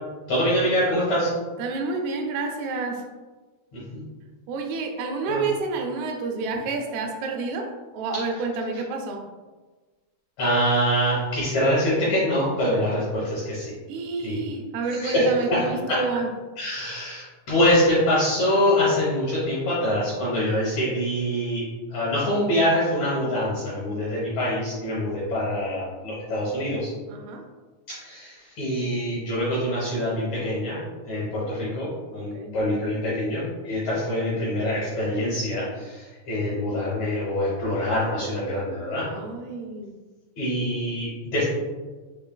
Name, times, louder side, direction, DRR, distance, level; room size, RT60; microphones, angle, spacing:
voice 1, 0.3-1.3 3.7-4.0 5.2-5.5 10.4-13.7 14.2-14.4 14.9-16.0 16.6-26.9 27.9-30.8 31.1-39.1 40.4-41.4, equal, 70° left, -7 dB, 1.7 m, -25 dB
voice 2, 1.6-3.0 4.5-7.7 7.9-9.2 13.9-16.3 27.1-27.4 32.1-32.5 39.0-39.9, right 4 dB, 85° right, 3 dB, 2.6 m, -29 dB
6.1 x 3.1 x 2.2 m, 1.3 s
omnidirectional pair, 4.4 m